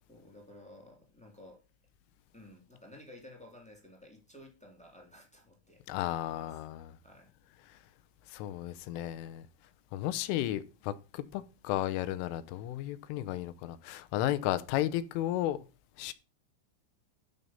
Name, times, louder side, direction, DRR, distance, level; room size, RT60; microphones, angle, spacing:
voice 1, 0.1-1.6 2.3-5.8 6.3-6.6 7.0-7.3 11.3-11.4, left 1 dB, 5° left, 0.7 m, -54 dB
voice 2, 5.9-6.9 8.3-9.5 9.9-15.6 16.0-16.1, left 13 dB, 80° left, 3.2 m, -34 dB
12.5 x 5.7 x 5.6 m
omnidirectional pair, 5.9 m